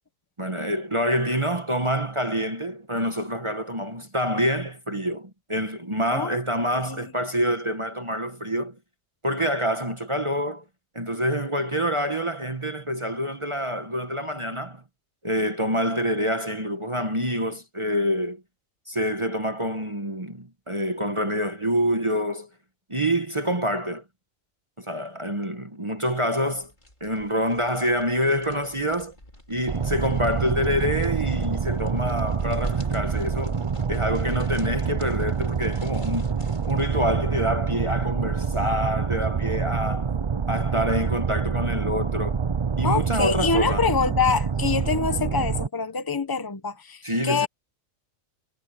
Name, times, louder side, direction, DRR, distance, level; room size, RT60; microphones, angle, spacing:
voice 1, 0.4-8.8 9.2-10.6 10.9-14.8 15.2-18.4 18.9-22.5 22.9-24.0 24.8-26.7 27.0-29.1 29.5-33.6 33.9-40.1 40.5-42.4 42.8-43.9 47.0-47.5, equal, 25° right, 1.3 m, -26 dB
voice 2, 6.7-7.1 42.8-47.5, left 5 dB, 20° left, 1.1 m, -25 dB
sound 1, 26.4-37.1, left 1 dB, 35° left, 5.2 m, -44 dB
sound 2, 29.7-45.7, right 6 dB, 45° right, 0.3 m, -26 dB
omnidirectional pair, 1.4 m